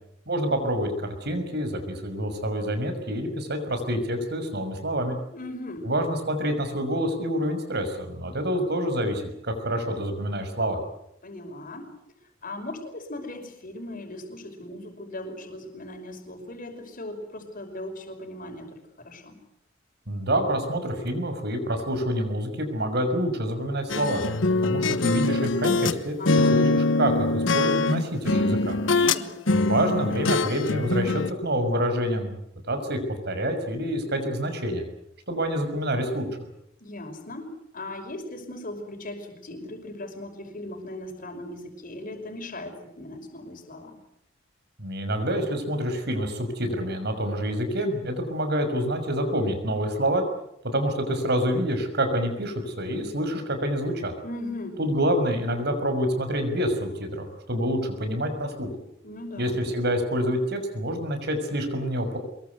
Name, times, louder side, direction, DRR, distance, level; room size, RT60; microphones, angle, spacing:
voice 1, 0.3-5.2 5.8-10.8 20.1-24.2 24.6-28.8 29.5-32.3 32.7-33.0 33.3-34.8 35.3-36.3 44.8-50.2 50.6-54.1 54.8-58.7 59.4-62.2, equal, 60° right, 7 dB, 6.1 m, -27 dB
voice 2, 5.3-5.9 11.2-12.0 12.4-19.4 26.2-26.6 28.9-29.4 36.8-44.0 54.2-54.8 59.0-59.6, left 1 dB, 45° left, 6 dB, 5.6 m, -38 dB
sound 1, 23.9-26.0 26.3-29.2 29.5-31.3, left 3 dB, 90° left, 1.3 m, -23 dB
24.5 x 22.5 x 8.2 m, 0.75 s
head